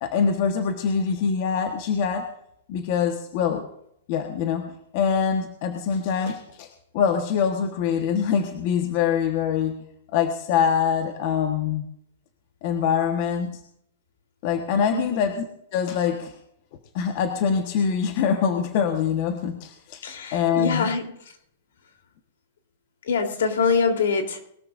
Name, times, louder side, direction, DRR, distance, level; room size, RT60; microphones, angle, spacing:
voice 1, 0.0-2.2 2.7-3.7 4.1-6.7 6.9-9.8 10.1-11.8 12.6-13.5 14.4-15.4 15.7-16.3 16.9-20.0 20.3-20.9, left 7 dB, 35° left, 5 dB, 1.3 m, -24 dB
voice 2, 14.9-15.2 20.0-21.0 23.1-24.4, left 5 dB, 75° left, 4 dB, 3.5 m, -24 dB
21.5 x 13.5 x 2.6 m, 0.70 s
supercardioid pair, 175°, 0 cm